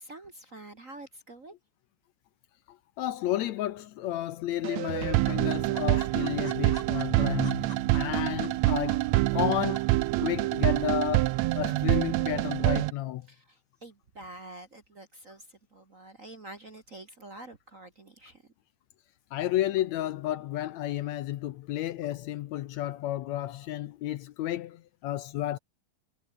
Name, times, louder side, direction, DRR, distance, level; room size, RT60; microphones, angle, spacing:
voice 1, 0.0-1.6 13.3-18.5, right 2 dB, 30° right, 1.6 m, -47 dB
voice 2, 2.7-13.3 19.3-25.6, left 13 dB, 70° left, 1.9 m, -32 dB
sound 1, 3.4-4.0 4.3-4.4 4.7-4.8 5.1-9.4 9.7-9.8, left 2 dB, 15° left, 2.2 m, -47 dB
sound 2, 4.6-12.9, right 19 dB, 80° right, 1.6 m, -26 dB
omnidirectional pair, 3.6 m